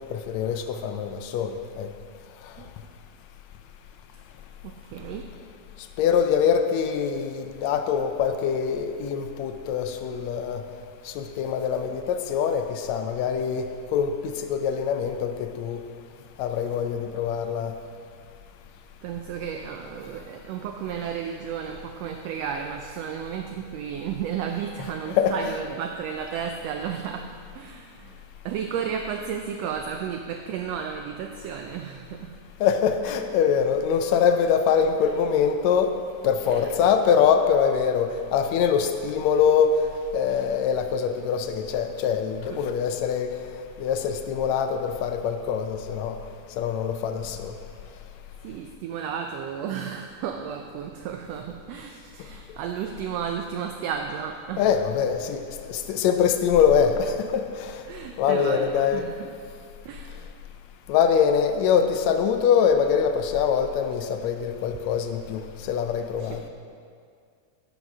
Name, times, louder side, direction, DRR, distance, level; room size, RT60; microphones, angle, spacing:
voice 1, 0.3-1.5 6.0-10.6 11.2-12.0 12.3-12.6 12.9-13.6 13.9-14.1 14.5-15.3 15.6-15.8 16.4-17.7 25.2-25.3 32.6-35.9 36.2-39.7 40.1-43.3 43.8-44.7 45.0-46.1 46.6-47.2 54.6-55.4 55.9-57.1 58.2-59.0 60.9-65.4 65.7-66.4, left 7 dB, 75° left, 7 dB, 1.8 m, -23 dB
voice 2, 4.6-5.3 19.0-28.2 28.4-32.4 36.4-36.9 42.5-42.6 47.7-47.8 48.4-54.7 57.9-59.3 59.8-60.3 66.2-66.5, right 8 dB, 80° right, 4 dB, 1.5 m, -33 dB
12.0 x 6.2 x 5.4 m, 2.2 s
omnidirectional pair, 3.4 m